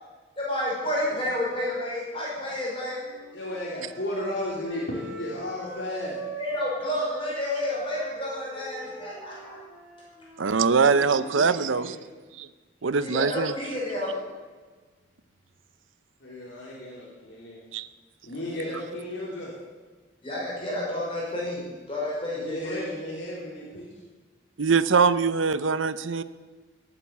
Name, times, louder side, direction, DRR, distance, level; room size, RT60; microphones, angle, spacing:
voice 1, 0.4-3.2 6.4-9.6 13.0-14.2 18.5-18.6 20.2-22.8, left 1 dB, 30° left, -5 dB, 5.5 m, -30 dB
Wind instrument woodwind instrument, 2.9-6.8 7.1-11.4, right 1 dB, 10° right, 4.1 m, -43 dB
voice 2, 3.3-6.2 10.9-12.1 16.2-17.6 18.2-19.5 22.4-23.9, left 1 dB, 65° left, -5 dB, 3.3 m, -34 dB
voice 3, 10.4-12.0 12.4-12.5 12.8-13.5 17.7-17.9 24.6-26.2, right 5 dB, 85° right, 14 dB, 0.7 m, -22 dB
18.5 x 9.1 x 7.3 m, 1.4 s
head